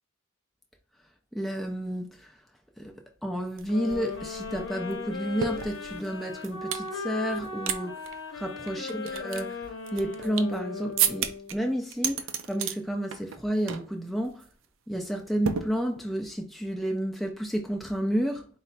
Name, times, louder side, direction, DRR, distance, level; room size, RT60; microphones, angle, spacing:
voice 1, 1.3-2.3 2.8-2.9 3.2-8.0 8.3-9.7 9.9-14.4 14.9-18.5, equal, ahead, 0.5 m, -31 dB
sound 1, 3.6-3.7 3.9-6.9 7.3-7.8 8.0-8.1 8.7-10.6 11.0-11.5 11.9-12.8 13.1-13.4 13.7-13.9 14.2-14.5 15.4-16.2, right 8 dB, 70° right, 0.4 m, -32 dB
sound 2, 3.7-11.7, left 4 dB, 65° left, 0.8 m, -37 dB
4.8 x 2.2 x 4.1 m
head